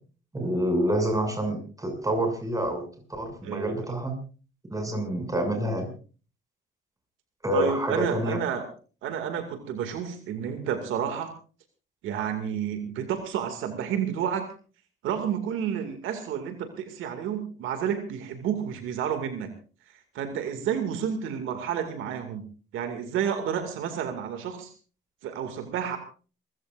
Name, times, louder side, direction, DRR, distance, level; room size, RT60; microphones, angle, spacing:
voice 1, 0.3-4.2 4.7-5.9 7.4-8.4, right 1 dB, 15° right, 5 dB, 6.8 m, -27 dB
voice 2, 3.4-3.8 7.5-8.7 9.0-11.3 12.0-14.5 15.0-19.5 20.1-22.5 22.7-24.7 25.2-26.0, right 8 dB, 90° right, 7 dB, 2.3 m, -30 dB
28.5 x 15.5 x 2.6 m, 0.38 s
cardioid pair, 90°, 20 cm